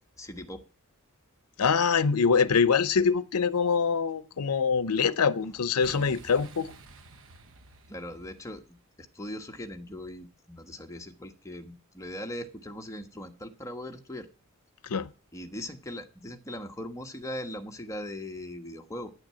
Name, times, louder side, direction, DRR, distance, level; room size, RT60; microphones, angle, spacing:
voice 1, 0.2-0.6 7.9-14.3 15.3-19.1, left 1 dB, 15° left, 1.3 m, -40 dB
voice 2, 1.6-6.7 14.8-15.1, left 5 dB, 80° left, 0.6 m, -24 dB
Boom, 5.8-8.8, right 3 dB, 65° right, 1.1 m, -50 dB
9.5 x 8.9 x 7.5 m
head